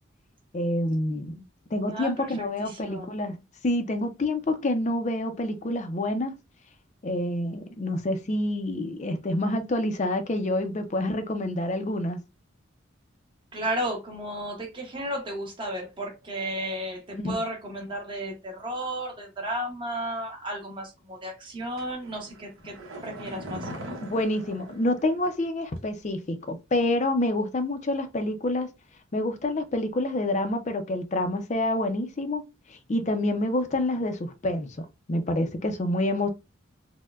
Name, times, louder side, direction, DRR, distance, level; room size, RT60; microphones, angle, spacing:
voice 1, 0.5-1.4 1.7-6.3 7.0-12.2 17.1-17.4 24.0-28.7 29.1-32.4 32.7-36.3, left 1 dB, 35° left, 0.4 m, -27 dB
voice 2, 1.8-3.1 13.5-22.8 23.0-23.7, right 1 dB, 25° right, 0.8 m, -33 dB
sound 1, 21.8-25.5 25.8-25.9, right 1 dB, 80° right, 0.9 m, -41 dB
4.3 x 2.1 x 2.3 m
head